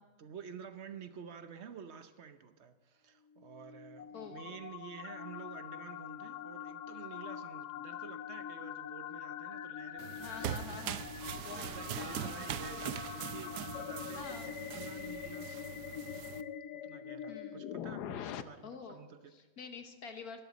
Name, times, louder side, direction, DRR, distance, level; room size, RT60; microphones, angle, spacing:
voice 1, 0.0-15.9 16.7-19.3, right 7 dB, 50° right, 10 dB, 1.0 m, -51 dB
sound 1, 3.3-18.4, left 9 dB, 90° left, 1.3 m, -44 dB
voice 2, 4.1-4.5 10.2-11.1 11.4-12.3 14.2-14.5 17.3-17.6 18.6-19.0 19.3-20.4, left 6 dB, 70° left, 6 dB, 1.9 m, -47 dB
sound 2, 10.0-16.4, right 11 dB, 85° right, 1.2 m, -42 dB
23.5 x 12.5 x 4.1 m, 1.2 s
omnidirectional pair, 1.7 m